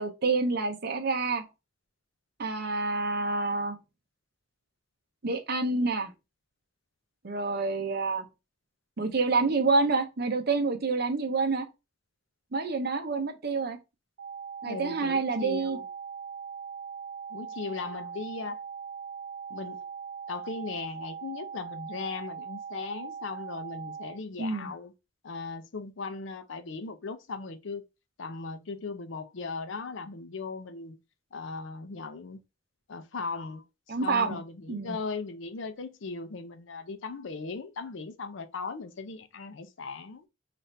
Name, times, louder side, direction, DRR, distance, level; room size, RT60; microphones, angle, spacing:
voice 1, 0.0-1.4 2.4-3.8 5.2-6.1 7.2-8.3 9.0-11.7 12.5-13.8 14.6-15.8 24.4-24.7 33.9-34.4 34.7-35.0, right 3 dB, 55° right, 0.7 m, -28 dB
sound 1, 14.2-24.2, right 6 dB, 70° right, 0.4 m, -40 dB
voice 2, 14.7-15.8 17.3-18.6 19.5-19.8 20.3-24.9 25.2-27.8 28.2-31.0 31.3-32.4 32.9-40.2, left 4 dB, 75° left, 0.6 m, -38 dB
4.0 x 2.5 x 3.2 m
head